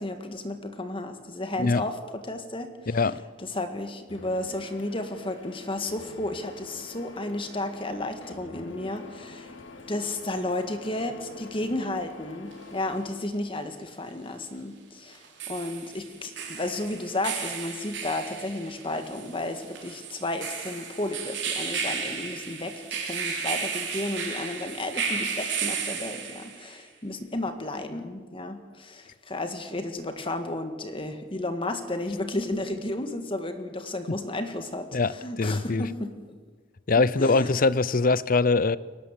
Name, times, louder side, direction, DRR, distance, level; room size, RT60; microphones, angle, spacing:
voice 1, 0.0-3.1 3.4-9.5 9.9-22.7 23.0-36.1 37.2-37.6, left 2 dB, 30° left, 1.8 m, -33 dB
voice 2, 2.9-3.2 34.9-35.1 35.4-35.8 36.9-38.8, left 3 dB, 45° left, 0.7 m, -22 dB
Printer, 4.1-13.1, left 3 dB, 70° left, 2.5 m, -46 dB
sound 1, 12.5-12.6 15.1-26.7, right 6 dB, 65° right, 4.1 m, -34 dB
23.0 x 18.5 x 7.6 m
head